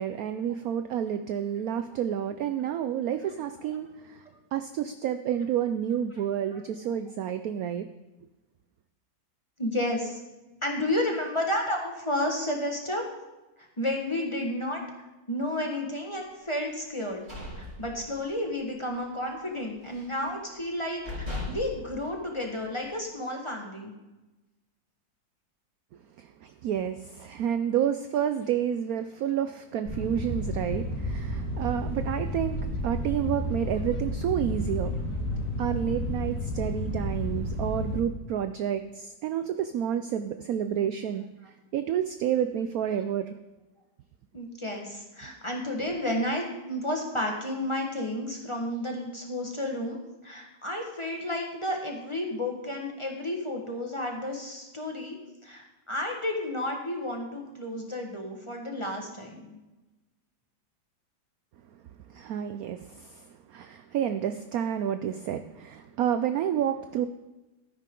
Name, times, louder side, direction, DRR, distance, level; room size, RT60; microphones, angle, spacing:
voice 1, 0.0-4.2 4.5-7.9 26.2-32.6 32.8-34.9 35.6-41.2 41.7-43.3 62.1-63.2 63.5-67.1, right 9 dB, 75° right, 9 dB, 0.8 m, -29 dB
voice 2, 9.6-10.2 10.6-13.0 13.6-14.8 15.3-17.2 17.6-24.0 44.3-55.2 55.4-59.6, left 1 dB, 15° left, 1 dB, 1.3 m, -32 dB
sound 1, 16.9-18.5 18.8-19.1 19.5-20.2 20.7-20.8 21.0-22.9, left 2 dB, 35° right, 3.3 m, -38 dB
sound 2, 29.8-38.0, equal, 55° left, 4.5 m, -31 dB
13.0 x 10.0 x 3.8 m, 1.1 s
omnidirectional pair, 2.0 m